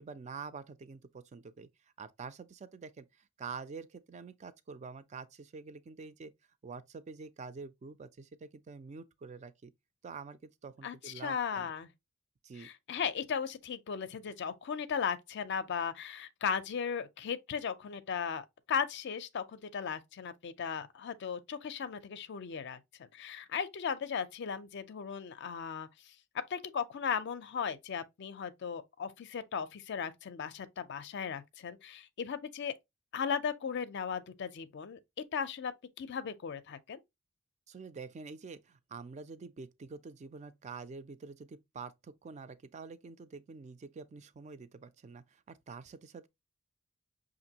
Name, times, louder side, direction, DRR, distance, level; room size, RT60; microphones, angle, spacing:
voice 1, 0.0-1.7 2.0-3.0 3.4-6.3 6.6-9.7 10.0-11.7 12.4-12.7 37.7-46.3, right 5 dB, 35° right, 0.3 m, -47 dB
voice 2, 10.8-11.9 12.6-26.1 26.5-32.7 33.1-35.0 35.3-35.7 36.0-37.0, left 6 dB, 55° left, 0.4 m, -37 dB
5.9 x 2.5 x 2.8 m
head